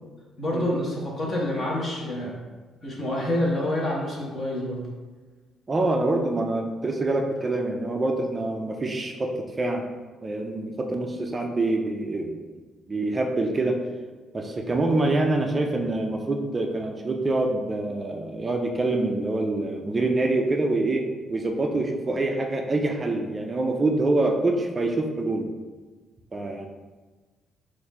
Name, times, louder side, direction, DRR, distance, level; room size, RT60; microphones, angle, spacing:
voice 1, 0.4-2.3 2.8-4.8, left 1 dB, 35° left, -3 dB, 1.1 m, -27 dB
voice 2, 5.7-9.8 10.2-12.4 12.9-13.8 14.3-25.5 26.3-26.7, right 2 dB, 20° right, 3 dB, 0.4 m, -25 dB
4.2 x 2.5 x 4.1 m, 1.3 s
cardioid pair, 140°, 0 cm